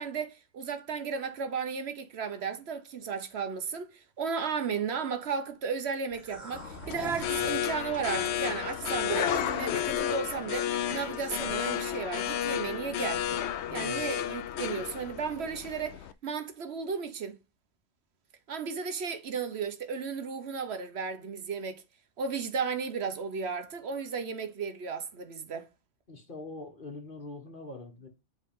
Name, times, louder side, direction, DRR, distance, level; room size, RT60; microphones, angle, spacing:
voice 1, 0.0-13.2 13.7-17.4 18.5-21.8 22.2-25.6, right 5 dB, 65° right, 1.1 m, -34 dB
sound 1, 6.1-12.4 12.8-12.9 13.3-13.4, right 2 dB, 40° right, 2.4 m, -44 dB
sound 2, 6.5-16.1, left 11 dB, 70° left, 0.8 m, -32 dB
voice 2, 13.6-14.1 26.1-28.1, left 2 dB, 45° left, 1.6 m, -43 dB
8.0 x 3.8 x 3.6 m
omnidirectional pair, 1.2 m